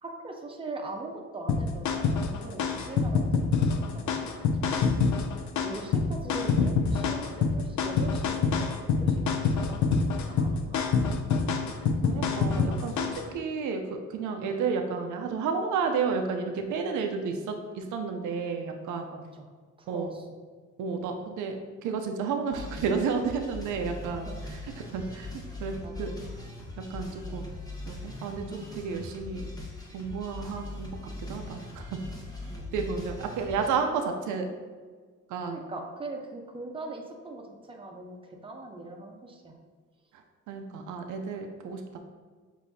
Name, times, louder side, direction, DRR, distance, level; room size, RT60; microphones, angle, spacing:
voice 1, 0.0-5.2 5.6-10.0 10.3-11.4 19.1-19.5 19.8-20.2 24.0-24.3 25.8-26.3 27.3-27.5 32.4-32.8 35.4-38.2 38.4-39.5, right 2 dB, 20° right, 1 dB, 0.7 m, -41 dB
sound 1, 1.5-13.3, left 5 dB, 70° left, 0.5 m, -26 dB
voice 2, 12.0-19.1 19.9-20.2 20.8-25.3 25.6-26.1 26.8-27.4 27.9-29.5 29.9-30.9 31.3-31.8 32.7-34.5 35.3-35.6 40.5-42.0, right 5 dB, 85° right, 5 dB, 0.5 m, -31 dB
sound 2, 22.5-33.7, left 2 dB, 10° left, 1.1 m, -41 dB
6.7 x 2.7 x 2.7 m, 1.5 s
cardioid pair, 90°, 30 cm